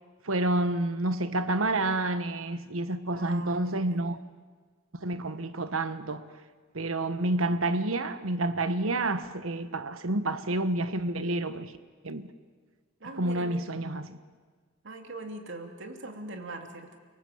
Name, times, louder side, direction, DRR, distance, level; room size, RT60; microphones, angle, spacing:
voice 1, 0.2-4.2 5.0-6.3 6.7-11.7 12.0-12.3 13.2-14.2, right 2 dB, 85° right, 1.3 m, -29 dB
voice 2, 3.1-4.1 13.0-13.7 14.8-17.0, right 2 dB, 65° right, 2.9 m, -42 dB
30.0 x 19.0 x 8.0 m
head